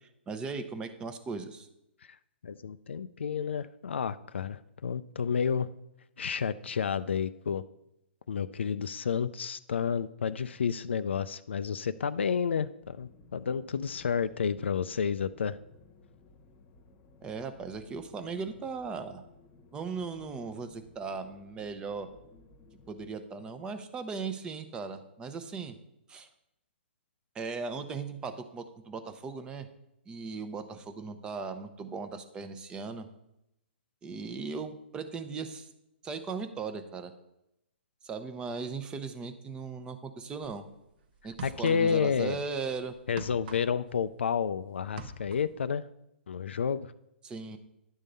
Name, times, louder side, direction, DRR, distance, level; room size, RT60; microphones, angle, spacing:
voice 1, 0.0-1.7 17.2-19.2 19.7-22.1 22.9-25.8 26.1-26.3 27.3-29.7 30.1-33.1 34.0-35.7 36.0-37.1 38.0-40.6 41.2-42.9 47.2-47.6, right 4 dB, 15° right, 8 dB, 0.7 m, -38 dB
voice 2, 2.4-5.7 6.2-7.6 8.3-15.6 41.4-42.4 43.1-45.9 46.3-46.9, left 6 dB, 85° left, 12 dB, 0.4 m, -30 dB
sound 1, 12.8-23.1, left 4 dB, 35° left, 1.0 m, -58 dB
sound 2, 40.4-40.6 41.2-42.2 42.4-44.5 44.8-45.6, right 5 dB, 55° right, 0.9 m, -45 dB
10.5 x 3.7 x 6.7 m, 0.85 s
hypercardioid pair, 140°, 6 cm